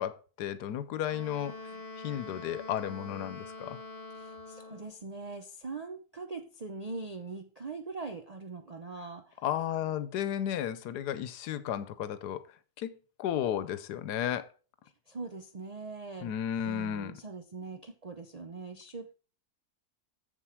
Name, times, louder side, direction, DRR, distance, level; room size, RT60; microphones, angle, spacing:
voice 1, 0.0-3.8 9.4-14.5 16.2-17.2, left 10 dB, 90° left, 1.3 m, -34 dB
Wind instrument woodwind instrument, 1.0-5.0, left 3 dB, 40° left, 2.2 m, -45 dB
voice 2, 4.2-9.4 15.1-16.3 16.7-19.1, right 3 dB, 55° right, 0.4 m, -42 dB
7.4 x 7.2 x 4.5 m
omnidirectional pair, 1.7 m